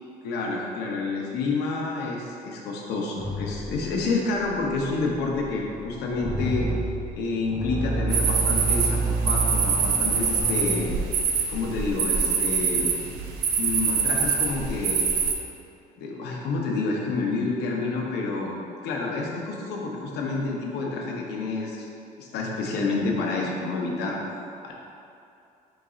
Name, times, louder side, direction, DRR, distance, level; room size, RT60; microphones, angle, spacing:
voice 1, 0.2-6.7 7.1-10.9 11.5-13.2 13.6-15.0 16.0-18.6 18.8-21.8 22.2-24.2 24.6-24.7, left 3 dB, 75° left, -1 dB, 0.7 m, -29 dB
sound 1, 3.2-10.9, right 2 dB, 15° right, 0.4 m, -29 dB
sound 2, 8.1-15.3, right 5 dB, 70° right, 0.5 m, -25 dB
4.0 x 3.7 x 2.4 m, 2.6 s
cardioid pair, 110°, 17 cm